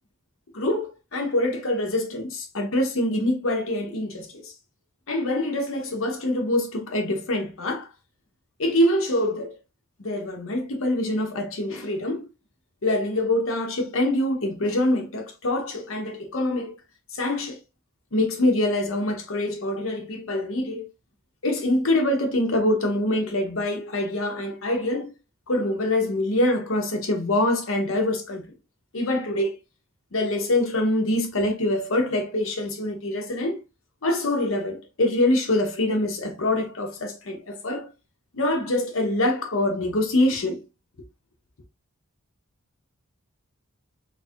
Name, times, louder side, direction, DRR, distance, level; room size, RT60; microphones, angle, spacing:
voice 1, 0.5-4.5 5.1-7.9 8.6-9.6 10.0-12.2 12.8-16.7 17.1-17.6 18.1-20.9 21.4-25.1 25.5-28.5 28.9-29.6 30.1-33.6 34.0-37.9 38.3-40.6, left 1 dB, 65° left, 0.9 m, -25 dB
4.3 x 3.3 x 2.4 m
head